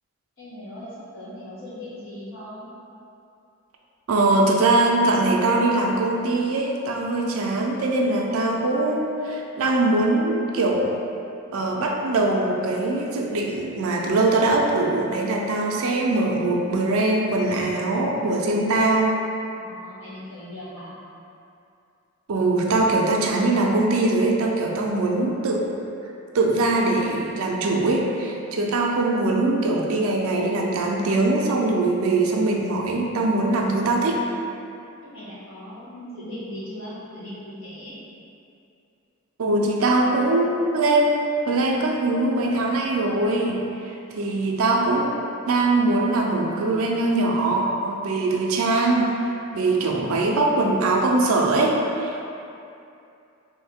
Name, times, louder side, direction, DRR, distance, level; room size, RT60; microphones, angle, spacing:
voice 1, 0.4-2.7 19.5-21.0 34.6-37.9, left 1 dB, 60° left, -10 dB, 1.1 m, -39 dB
voice 2, 4.1-10.9 11.5-19.2 22.3-25.7 26.3-34.3 39.4-41.1 41.5-43.6 44.1-45.1 45.5-49.1 49.5-52.3, right 2 dB, 75° right, 0 dB, 0.4 m, -22 dB
3.1 x 2.6 x 3.5 m, 2.6 s
head